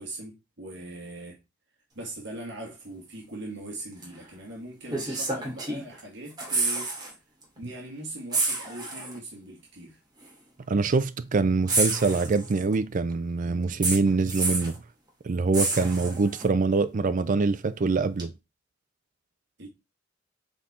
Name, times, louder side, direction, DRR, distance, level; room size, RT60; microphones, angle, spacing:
voice 1, 0.0-1.4 1.9-7.2 7.6-10.0 19.6-19.7, right 1 dB, 60° right, 1.9 m, -41 dB
sound 1, 4.0-4.2 4.9-6.0 6.3-7.1 7.4-7.6 8.3-9.2 10.2-10.3 11.7-12.7 13.8-14.8 15.5-16.4 18.2-18.3, right 3 dB, 20° right, 2.4 m, -29 dB
voice 2, 10.7-14.8 15.2-18.3, right 4 dB, 40° right, 0.4 m, -24 dB
7.3 x 4.2 x 3.7 m
head